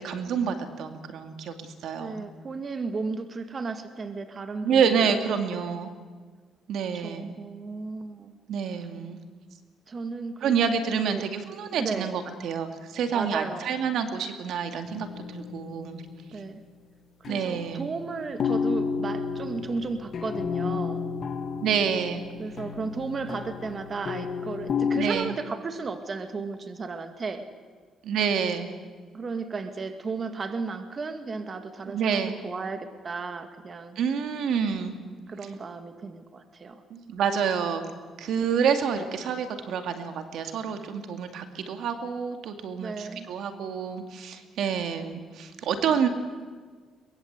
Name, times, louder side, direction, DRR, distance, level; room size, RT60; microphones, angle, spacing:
voice 1, 0.0-2.2 4.6-5.9 6.7-7.3 8.5-9.2 10.4-15.1 15.3-16.0 17.3-17.9 21.6-22.2 25.0-25.4 28.0-28.7 31.9-32.4 34.0-34.9 36.9-37.8 38.2-46.1, right 7 dB, 75° right, 7 dB, 2.2 m, -28 dB
voice 2, 2.0-5.1 5.5-5.8 6.9-8.3 9.9-10.6 11.1-11.3 11.8-12.1 13.1-13.7 16.3-16.6 17.3-21.0 22.4-27.5 29.1-34.0 35.3-36.8 42.8-43.3, right 4 dB, 40° right, 7 dB, 2.0 m, -34 dB
sound 1, 14.8-16.4 17.2-25.0, left 5 dB, 55° left, 1.9 m, -32 dB
23.0 x 21.5 x 8.2 m, 1.5 s
cardioid pair, 90°, 0 cm